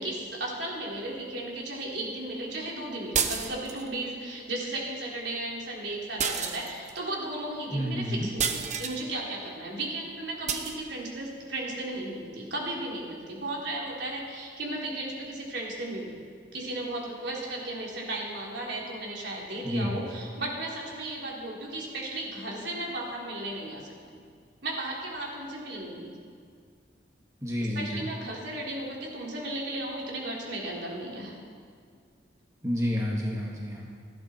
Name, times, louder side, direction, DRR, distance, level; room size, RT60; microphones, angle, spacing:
voice 1, 0.0-16.2 16.5-24.2 24.6-26.1 27.6-31.3, right 1 dB, 70° right, -3 dB, 3.5 m, -35 dB
sound 1, 3.1-3.9 6.2-7.0 8.4-9.0 10.5-10.8, right 7 dB, 40° right, 0.9 m, -29 dB
voice 2, 7.7-8.3 19.6-19.9 27.4-28.0 32.6-33.9, equal, 15° right, -4 dB, 1.9 m, -29 dB
28.0 x 10.5 x 4.5 m, 2.1 s
head